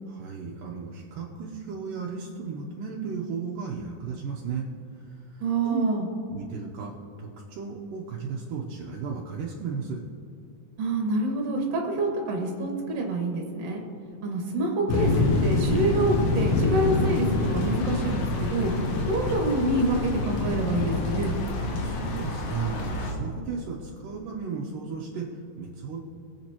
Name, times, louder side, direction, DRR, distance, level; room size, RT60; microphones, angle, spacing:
voice 1, 0.1-4.6 5.3-5.9 6.3-10.0 21.8-26.0, right 6 dB, 75° right, -2 dB, 2.4 m, -34 dB
voice 2, 5.4-6.1 10.8-13.8 14.2-15.1 15.4-18.7 19.1-21.4, right 2 dB, 50° right, 0 dB, 2.5 m, -27 dB
sound 1, 14.9-23.1, left 2 dB, 60° left, 2.0 m, -26 dB
21.5 x 7.7 x 3.0 m, 2.5 s
omnidirectional pair, 4.0 m